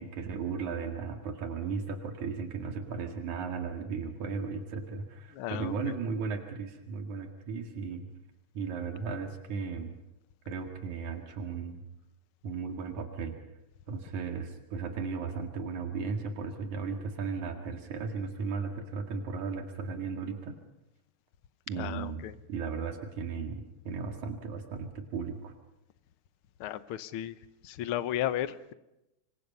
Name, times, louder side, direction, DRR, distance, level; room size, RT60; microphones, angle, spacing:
voice 1, 0.0-8.0 8.5-9.9 10.5-11.8 12.4-13.4 13.9-20.6 21.7-22.2 22.5-25.5, right 5 dB, 85° right, 5 dB, 3.4 m, -36 dB
voice 2, 5.3-5.7 21.8-22.3 26.6-27.4 27.6-28.7, left 12 dB, 65° left, 14 dB, 1.5 m, -34 dB
26.5 x 24.0 x 5.5 m, 0.92 s
omnidirectional pair, 3.3 m